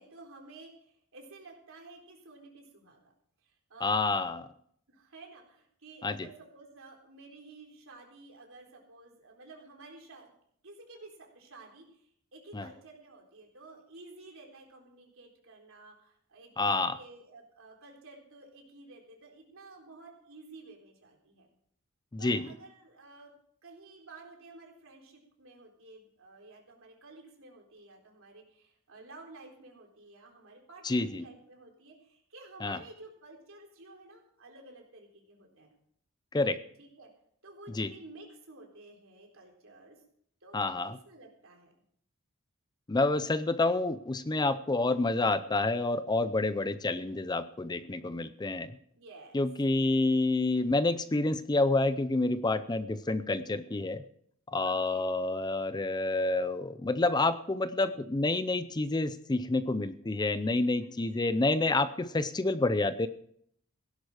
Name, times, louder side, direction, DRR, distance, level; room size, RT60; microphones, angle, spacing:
voice 1, 0.0-3.0 3.4-4.2 4.9-10.3 10.6-21.5 22.2-23.3 23.6-35.7 36.8-37.1 37.4-40.0 40.4-41.7 49.0-49.5 50.0-50.1 54.6-55.1 60.8-60.9, right 2 dB, 65° right, 0 dB, 3.9 m, -52 dB
voice 2, 3.8-4.4 6.0-6.2 12.5-12.7 16.6-17.0 22.1-22.5 30.8-31.2 32.6-32.8 36.3-36.6 37.7-37.9 40.5-41.0 42.9-48.7 49.3-54.0 54.5-63.1, left 2 dB, 20° left, 13 dB, 0.5 m, -28 dB
17.0 x 11.0 x 4.9 m, 0.67 s
head